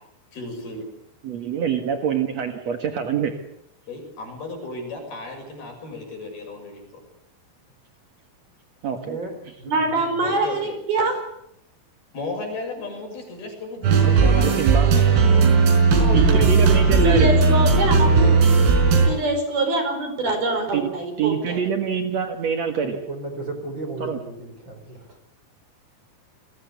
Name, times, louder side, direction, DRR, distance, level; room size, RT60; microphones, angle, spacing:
voice 1, 0.3-0.9 3.9-7.0 10.2-10.8 12.1-15.5 18.2-18.7, left 3 dB, 50° left, 8.7 m, -35 dB
voice 2, 1.2-3.4 8.8-9.2 14.0-14.9 16.1-17.3 20.7-20.9 21.2-23.0 24.0-24.2, right 7 dB, 70° right, 1.5 m, -25 dB
voice 3, 8.9-10.3 22.8-25.2, right 2 dB, 25° right, 5.0 m, -35 dB
voice 4, 9.6-11.2 16.0-18.3 19.1-21.6, right 2 dB, 45° right, 6.9 m, -24 dB
sound 1, 13.8-19.1, right 4 dB, 90° right, 7.3 m, -16 dB
29.5 x 22.0 x 8.3 m
omnidirectional pair, 5.9 m